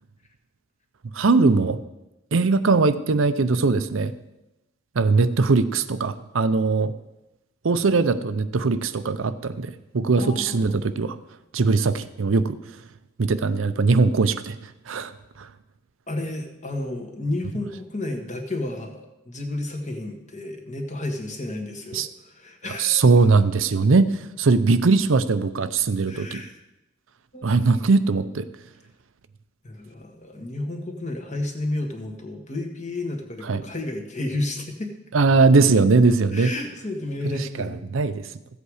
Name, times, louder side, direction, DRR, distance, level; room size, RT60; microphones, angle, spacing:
voice 1, 1.1-1.8 2.3-4.1 5.0-6.9 7.6-11.2 11.5-12.6 13.2-15.1 15.4-15.5 21.9-22.1 22.8-24.1 24.4-26.4 27.4-28.5 33.4-33.6 35.1-36.5 37.2-38.3, right 4 dB, 75° right, 12 dB, 0.6 m, -20 dB
voice 2, 10.1-10.8 16.1-23.0 23.8-23.9 26.1-26.5 27.3-27.9 29.6-34.9 36.3-37.9, left 2 dB, 35° left, 3 dB, 1.6 m, -32 dB
14.5 x 8.1 x 4.9 m, 0.95 s
head